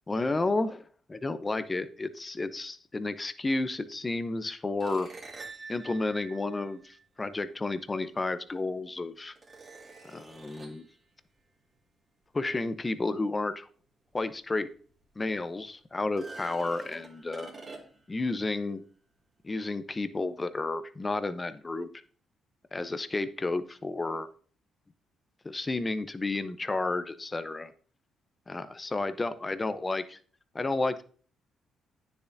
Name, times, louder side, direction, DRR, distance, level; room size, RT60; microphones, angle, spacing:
voice 1, 0.1-5.1 5.7-9.3 10.0-10.9 12.3-13.7 14.1-14.7 15.2-17.6 18.1-18.8 19.4-21.9 22.7-24.3 25.4-27.7 28.5-30.2 30.5-31.0, left 2 dB, 25° left, 12 dB, 0.7 m, -31 dB
sound 1, 4.8-7.3 8.5-8.6 9.3-10.9 14.2-14.3 14.7-14.8 16.0-18.2, right 3 dB, 35° right, 2.3 m, -47 dB
9.5 x 7.0 x 2.7 m, 0.43 s
cardioid pair, 90°, 0 cm